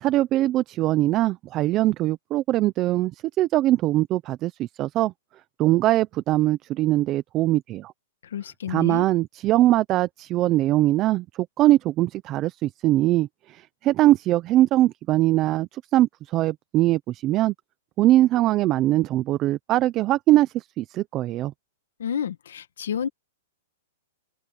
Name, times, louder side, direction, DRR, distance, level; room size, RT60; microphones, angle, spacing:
voice 1, 0.0-5.1 5.6-7.9 8.7-11.2 11.6-17.5 18.0-21.5, right 15 dB, 25° right, 0.5 m, -22 dB
voice 2, 8.3-9.1 22.0-23.1, left 8 dB, 85° left, 1.8 m, -30 dB
open air
hypercardioid pair, 160°, 0 cm